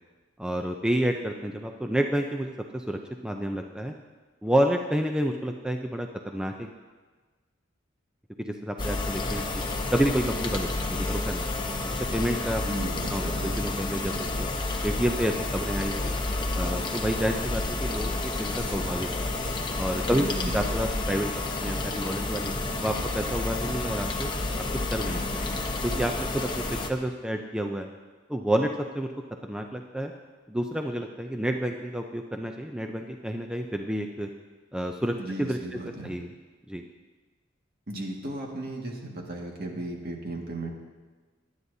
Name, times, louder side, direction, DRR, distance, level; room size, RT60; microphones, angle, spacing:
voice 1, 0.4-3.9 4.4-6.7 8.5-9.6 9.9-11.5 11.8-12.6 13.1-14.5 14.8-16.1 16.5-19.3 19.8-22.5 22.8-24.3 24.7-26.6 26.9-27.9 28.3-29.1 29.4-30.1 30.5-34.3 34.7-35.6 36.0-36.3 36.7-36.8, equal, 5° right, 3 dB, 0.5 m, -29 dB
sound 1, 8.8-26.9, left 2 dB, 25° left, 0.9 m, -30 dB
voice 2, 12.6-13.5 20.1-20.7 35.2-36.1 37.9-40.7, right 1 dB, 50° right, 0 dB, 1.9 m, -35 dB
22.5 x 9.5 x 2.7 m, 1.4 s
head